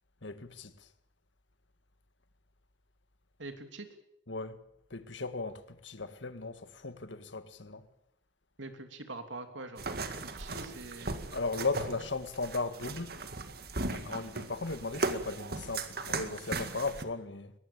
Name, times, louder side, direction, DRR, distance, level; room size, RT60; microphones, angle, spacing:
voice 1, 0.2-0.7 4.3-4.6 4.9-7.8 11.3-13.1 13.9-17.5, left 3 dB, 80° left, 1.8 m, -37 dB
voice 2, 3.4-3.9 8.6-11.2, right 2 dB, 90° right, 3.2 m, -44 dB
sound 1, 9.8-17.0, right 3 dB, 55° right, 2.0 m, -37 dB
22.5 x 19.0 x 8.8 m
head